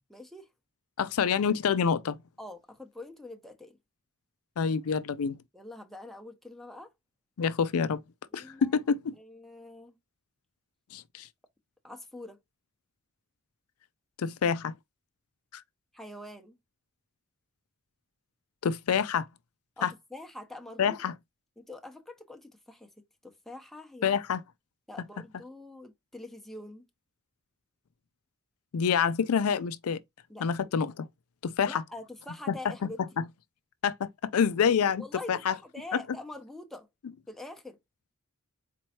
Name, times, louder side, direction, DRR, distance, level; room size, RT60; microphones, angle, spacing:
voice 1, 0.1-0.5 2.4-3.8 5.5-6.9 8.3-8.8 9.1-10.0 11.8-12.4 15.9-16.6 19.8-21.0 21.6-24.2 24.9-26.8 30.3-30.7 31.7-33.0 35.0-36.9 37.3-37.8, left 2 dB, ahead, 0.8 m, -45 dB
voice 2, 1.0-2.2 4.6-5.4 7.4-8.0 8.3-9.1 10.9-11.3 14.2-14.7 15.5-15.6 18.6-19.3 19.8-19.9 20.8-21.1 24.0-24.4 28.7-30.0 30.4-31.1 31.4-31.8 32.5-32.6 33.8-35.0 35.3-35.5, left 6 dB, 70° left, 0.4 m, -27 dB
4.3 x 3.0 x 2.8 m
head